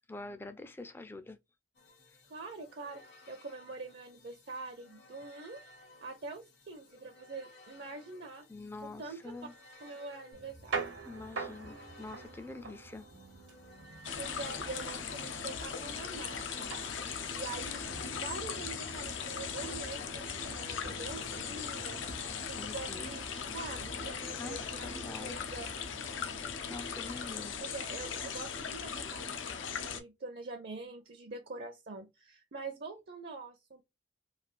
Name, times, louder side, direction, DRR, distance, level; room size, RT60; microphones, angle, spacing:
voice 1, 0.1-1.4 8.5-9.5 11.1-13.1 22.6-23.1 24.4-25.4 26.7-27.6, left 3 dB, 10° left, 0.3 m, -45 dB
sound 1, 1.7-17.7, left 2 dB, 65° left, 1.0 m, -58 dB
voice 2, 2.3-3.0 3.3-5.6 6.0-8.4 8.8-9.2 9.8-10.8 14.2-25.7 27.6-33.8, right 3 dB, 55° right, 0.5 m, -45 dB
sound 2, 10.3-26.5, right 4 dB, 80° right, 0.9 m, -46 dB
sound 3, 14.0-30.0, left 6 dB, 85° left, 0.5 m, -39 dB
3.3 x 2.4 x 2.4 m
head